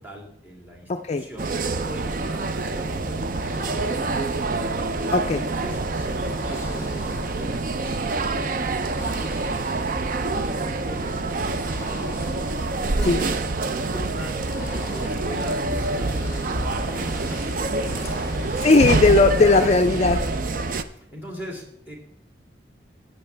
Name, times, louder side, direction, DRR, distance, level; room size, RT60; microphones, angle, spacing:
voice 1, 0.0-1.5 1.8-4.2 5.5-18.6 20.3-22.0, equal, 10° right, -1 dB, 2.5 m, -41 dB
voice 2, 0.9-1.2 5.1-5.4 13.1-13.2 18.6-20.2, left 3 dB, 40° left, 7 dB, 0.4 m, -17 dB
sound 1, 1.4-20.8, right 3 dB, 50° right, 0.5 m, -27 dB
sound 2, 2.8-20.6, left 1 dB, 15° left, 1.6 m, -36 dB
14.5 x 8.6 x 3.4 m, 0.69 s
head